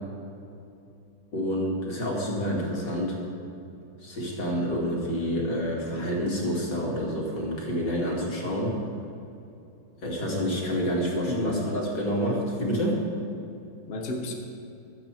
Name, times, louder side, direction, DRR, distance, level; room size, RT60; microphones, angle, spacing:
voice 1, 1.3-3.2 4.0-8.8 10.0-13.0, equal, 60° left, -2 dB, 3.1 m, -28 dB
voice 2, 11.1-12.1 13.9-14.3, left 1 dB, 35° left, 1 dB, 1.1 m, -31 dB
14.5 x 12.0 x 4.5 m, 2.8 s
omnidirectional pair, 2.2 m